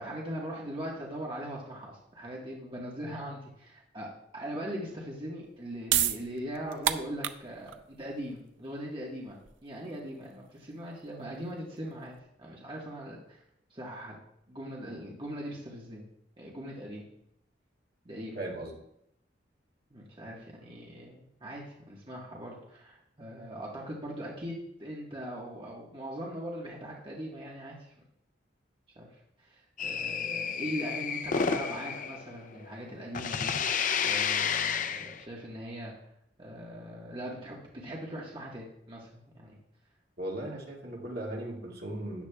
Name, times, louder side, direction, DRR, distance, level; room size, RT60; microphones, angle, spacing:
voice 1, 0.0-13.4 13.7-14.1 14.5-16.1 16.4-17.0 18.0-18.4 19.9-27.9 28.9-33.5 34.0-35.9 36.4-39.6, equal, 30° right, -3 dB, 1.5 m, -40 dB
sound 1, 5.4-12.2, right 10 dB, 90° right, 0.6 m, -34 dB
voice 2, 18.4-18.7 40.2-42.3, right 1 dB, 55° right, -2 dB, 2.2 m, -37 dB
sound 2, 29.8-32.9 33.1-35.2, left 6 dB, 45° left, 0.5 m, -31 dB
13.5 x 9.4 x 2.4 m, 0.76 s
head